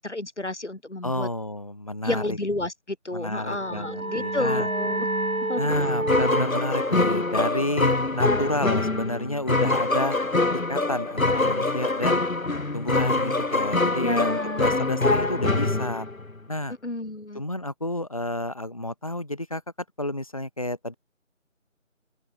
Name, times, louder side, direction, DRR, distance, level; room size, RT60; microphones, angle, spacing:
voice 1, 0.0-1.3 2.0-5.1 5.5-5.7 14.0-14.8 16.8-17.4, left 2 dB, 55° left, 2.4 m, -30 dB
voice 2, 1.0-2.4 3.1-4.7 5.6-10.2 10.7-12.2 12.7-16.1 16.5-16.8 17.3-19.6 20.0-21.0, left 1 dB, 25° left, 3.3 m, -30 dB
sound 1, 3.4-8.7, right 1 dB, 85° right, 2.8 m, -30 dB
sound 2, 5.7-16.3, left 2 dB, 80° left, 1.7 m, -24 dB
open air
figure-of-eight pair, 175°, 40 cm